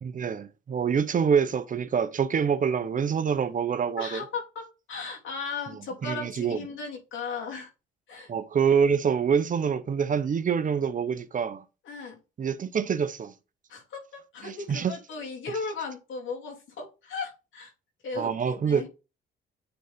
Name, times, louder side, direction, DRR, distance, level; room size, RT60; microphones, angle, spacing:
voice 1, 0.0-4.2 6.0-6.6 8.3-11.6 12.4-13.3 14.4-14.9 18.2-18.9, right 7 dB, 40° right, 0.7 m, -26 dB
voice 2, 4.0-7.7 8.1-8.3 11.8-12.2 13.7-17.7 18.0-18.9, left 4 dB, 75° left, 2.9 m, -36 dB
9.1 x 3.9 x 3.5 m
cardioid pair, 90°, 20 cm